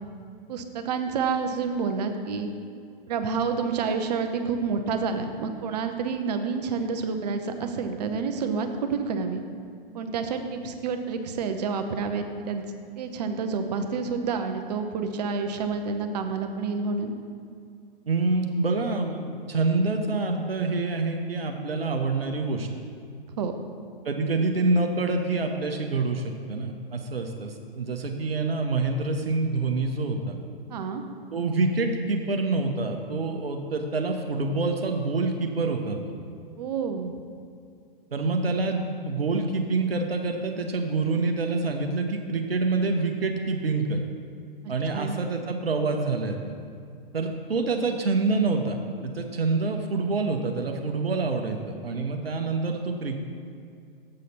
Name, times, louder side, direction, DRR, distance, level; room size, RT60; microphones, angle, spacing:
voice 1, 0.5-2.5 3.1-9.4 9.9-12.6 13.0-17.1 23.4-23.6 30.7-31.0 36.6-37.1 44.9-45.1, right 5 dB, 45° right, 7 dB, 0.7 m, -29 dB
voice 2, 18.1-19.2 19.5-22.7 24.0-30.3 31.3-36.1 38.1-44.0 44.7-46.5 47.1-53.2, right 3 dB, 80° right, 4 dB, 0.7 m, -26 dB
7.5 x 6.5 x 4.1 m, 2.3 s
figure-of-eight pair, 115°, 29 cm